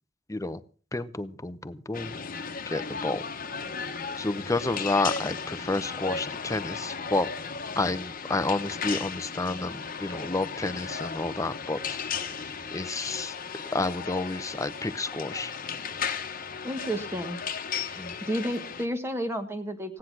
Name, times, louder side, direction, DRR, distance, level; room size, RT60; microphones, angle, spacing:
voice 1, 0.3-0.6 0.9-2.2 2.7-3.2 4.2-7.3 7.8-12.4 12.7-13.4 13.7-15.5 18.0-18.1, left 2 dB, 15° left, 13 dB, 0.8 m, -30 dB
sound 1, 1.9-18.9, left 6 dB, 50° left, 1.3 m, -35 dB
voice 2, 16.6-17.4 18.2-20.0, equal, 15° right, 6 dB, 1.5 m, -31 dB
16.5 x 10.0 x 6.0 m, 0.40 s
head